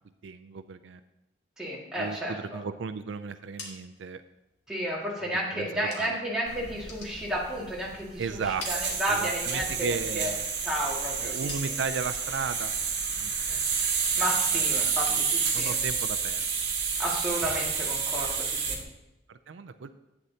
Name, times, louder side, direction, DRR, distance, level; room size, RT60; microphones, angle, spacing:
voice 1, 0.2-1.0 2.0-4.2 5.2-6.2 8.2-8.7 9.1-10.4 11.2-13.8 14.1-14.2 14.5-15.3 15.5-16.5 19.3-20.0, right 5 dB, 85° right, 12 dB, 0.4 m, -35 dB
voice 2, 1.6-2.6 4.7-8.4 8.7-10.3 10.6-11.4 14.2-15.8 17.0-18.8, right 1 dB, 5° right, -6 dB, 2.0 m, -32 dB
sound 1, 3.3-6.4 6.7-8.0 8.3-9.6 10.0-12.1 12.5-13.0 13.3-14.6 14.9-15.5 15.7-18.6, left 3 dB, 75° left, 2.0 m, -49 dB
sound 2, 6.5-18.8, right 5 dB, 65° right, 1.5 m, -29 dB
11.5 x 9.0 x 2.8 m, 0.93 s
head